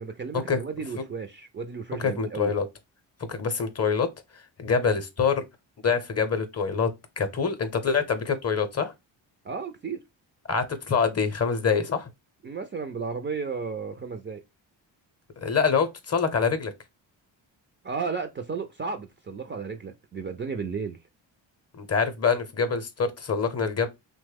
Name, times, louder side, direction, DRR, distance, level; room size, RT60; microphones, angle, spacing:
voice 1, 0.0-2.5 9.4-10.0 12.4-14.4 17.8-21.0, right 5 dB, 25° right, 0.4 m, -33 dB
voice 2, 2.0-2.7 3.2-4.1 4.6-5.4 5.8-6.9 7.2-8.9 10.5-12.1 15.4-16.7 21.7-23.9, left 5 dB, 35° left, 0.7 m, -25 dB
2.9 x 2.1 x 3.3 m
cardioid pair, 65°, 46 cm